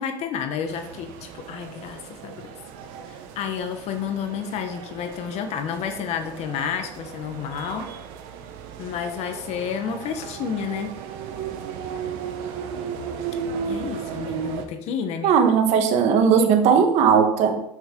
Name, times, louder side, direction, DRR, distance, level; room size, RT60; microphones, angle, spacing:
voice 1, 0.0-2.5 3.1-7.9 8.8-10.9 13.6-15.4 15.8-15.9, left 7 dB, 60° left, 7 dB, 1.1 m, -30 dB
sound 1, 0.7-14.6, right 7 dB, 80° right, 0.9 m, -35 dB
voice 2, 15.2-17.6, right 6 dB, 65° right, 6 dB, 1.2 m, -18 dB
6.8 x 6.1 x 3.7 m, 0.75 s
supercardioid pair, 95°, 12 cm